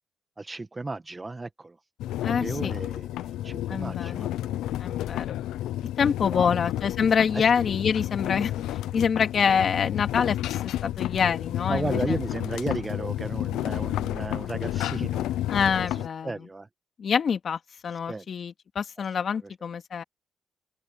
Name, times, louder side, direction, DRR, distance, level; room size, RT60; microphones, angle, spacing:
voice 1, 0.4-1.8 2.2-4.6 6.3-6.6 7.3-7.4 11.7-15.3 15.7-16.7 18.1-18.3 19.4-19.5, right 3 dB, 20° right, 1.5 m, -34 dB
sound 1, 2.0-16.1, left 13 dB, 85° left, 0.6 m, -31 dB
voice 2, 2.2-2.7 3.7-4.2 4.8-5.4 6.0-12.2 15.5-16.3 17.0-20.0, left 6 dB, 50° left, 2.3 m, -26 dB
open air
cardioid pair, 90°, 0 cm